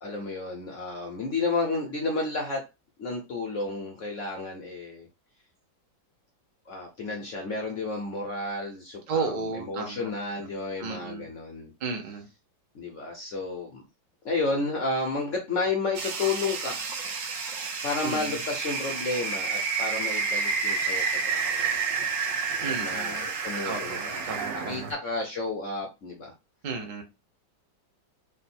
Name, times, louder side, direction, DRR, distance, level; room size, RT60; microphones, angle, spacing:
voice 1, 0.0-2.7 3.0-5.1 6.7-11.7 12.7-13.8 14.2-16.8 17.8-21.8 22.6-24.3 24.5-26.3, left 3 dB, 65° left, 1 dB, 0.7 m, -32 dB
voice 2, 9.1-10.5 10.8-11.3 11.8-12.3 18.0-18.4 22.6-23.3 23.6-24.9 26.6-27.0, right 4 dB, 85° right, 3 dB, 0.4 m, -34 dB
sound 1, 15.9-24.9, right 5 dB, 65° right, 0.8 m, -30 dB
3.5 x 2.2 x 4.2 m, 0.25 s
omnidirectional pair, 2.1 m